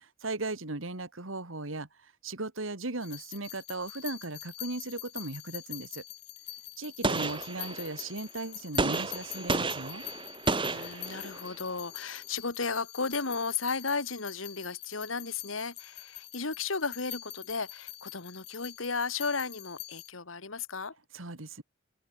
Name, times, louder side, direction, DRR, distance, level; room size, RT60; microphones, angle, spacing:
voice 1, 0.0-6.0 6.8-10.0 21.1-21.6, right 2 dB, 80° right, 2.4 m, -37 dB
sound 1, 3.0-20.1, left 15 dB, 55° left, 2.3 m, -45 dB
Gunshot gunfire, 7.0-8.1 8.8-11.6, right 3 dB, 25° right, 1.9 m, -32 dB
voice 2, 10.6-21.0, left 4 dB, 85° left, 2.2 m, -34 dB
open air
head